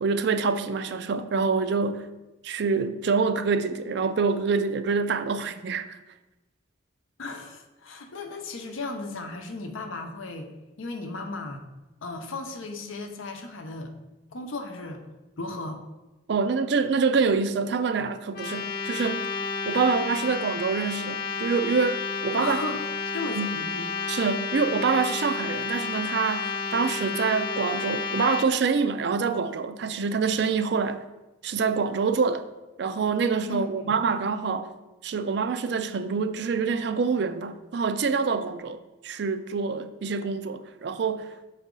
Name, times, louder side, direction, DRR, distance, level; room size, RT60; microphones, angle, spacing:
voice 1, 0.0-2.1 2.4-6.0 16.3-19.3 19.7-22.6 23.3-23.5 24.1-31.0 31.4-32.4 32.8-34.7 35.0-38.8 39.0-41.3, right 5 dB, 55° right, 0.3 m, -26 dB
voice 2, 7.2-10.5 10.8-11.6 12.0-13.9 14.3-15.0 15.4-15.9 22.4-22.9 23.1-23.9 33.5-34.0, left 2 dB, 80° left, 0.7 m, -35 dB
sound 1, 18.3-28.5, left 5 dB, 45° left, 0.4 m, -31 dB
6.9 x 4.1 x 3.7 m
head